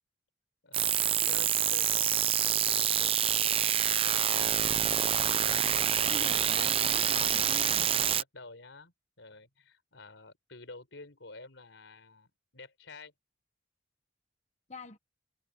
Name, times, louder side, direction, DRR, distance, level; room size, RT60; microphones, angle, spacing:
voice 1, 0.6-4.6 7.7-12.3 12.5-13.1, left 3 dB, 80° left, 4.2 m, -50 dB
sound 1, 0.7-8.2, right 9 dB, 30° right, 0.7 m, -27 dB
voice 2, 6.0-7.9 14.7-15.0, left 3 dB, 35° left, 1.0 m, -44 dB
head